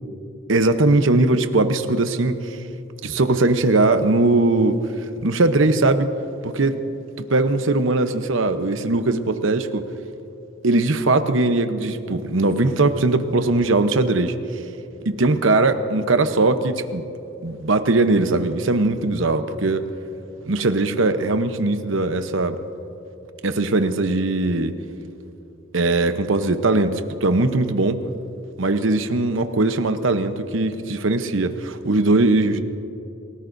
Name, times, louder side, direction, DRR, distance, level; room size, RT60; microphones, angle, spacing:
voice 1, 0.5-2.6 3.0-4.8 5.2-6.1 6.4-6.8 7.3-9.9 10.6-14.3 15.1-17.1 17.4-19.9 20.5-22.6 23.4-24.7 25.7-28.0 28.6-32.6, right 2 dB, 70° right, 8 dB, 0.9 m, -20 dB
29.0 x 18.5 x 2.7 m, 2.9 s
head